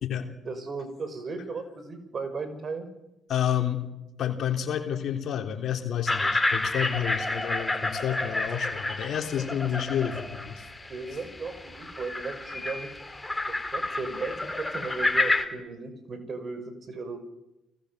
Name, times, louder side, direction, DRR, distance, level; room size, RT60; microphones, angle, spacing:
voice 1, 0.4-2.9 10.9-12.9 13.5-17.2, right 4 dB, 40° right, 10 dB, 6.1 m, -36 dB
voice 2, 3.3-3.8 4.2-10.7, left 9 dB, 55° left, 5 dB, 3.3 m, -30 dB
sound 1, 6.1-15.5, left 2 dB, 15° left, 3.6 m, -30 dB
30.0 x 19.5 x 7.9 m, 0.94 s
hypercardioid pair, 60°, 0 cm